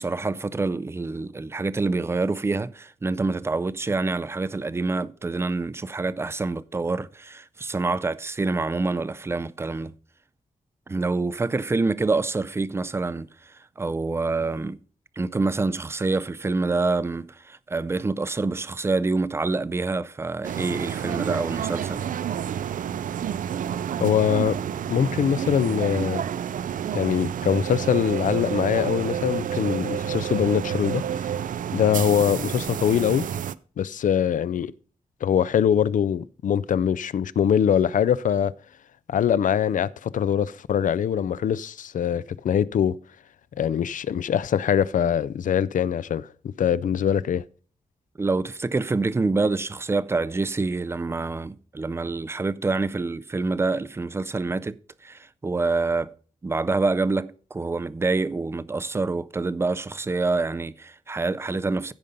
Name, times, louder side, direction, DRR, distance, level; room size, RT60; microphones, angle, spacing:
voice 1, 0.0-9.9 10.9-14.8 15.2-22.0 48.2-54.8 55.0-56.1 56.4-61.9, right 3 dB, 20° right, 0.3 m, -26 dB
sound 1, 20.4-33.5, right 9 dB, 80° right, 0.4 m, -29 dB
voice 2, 24.0-24.6 24.9-26.2 26.9-31.3 31.7-33.2 33.8-34.7 35.2-38.5 39.1-43.0 43.6-46.3 46.6-47.4, left 9 dB, 75° left, 0.4 m, -23 dB
15.5 x 5.3 x 3.9 m
wide cardioid pair, 175°, 14 cm